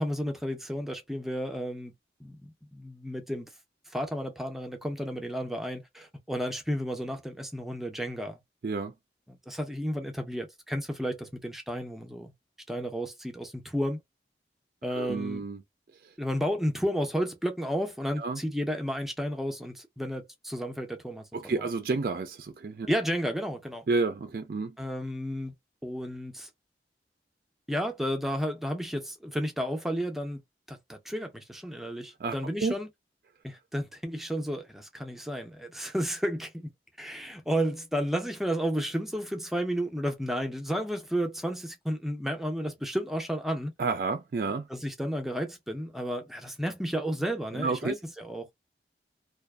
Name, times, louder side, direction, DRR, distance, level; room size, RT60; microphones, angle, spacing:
voice 1, 0.0-1.9 2.2-3.5 3.9-8.4 9.3-12.3 12.7-14.0 14.8-15.4 16.2-21.7 22.9-23.8 24.8-25.5 25.8-26.5 27.7-30.4 30.7-32.9 33.4-36.7 37.0-43.7 44.7-48.5, equal, ahead, 0.5 m, -32 dB
voice 2, 14.9-15.6 18.2-18.4 21.3-22.9 23.9-24.7 32.2-32.3 32.6-32.7 43.8-44.7 47.5-47.9, right 4 dB, 55° right, 0.4 m, -30 dB
2.5 x 2.3 x 2.2 m
head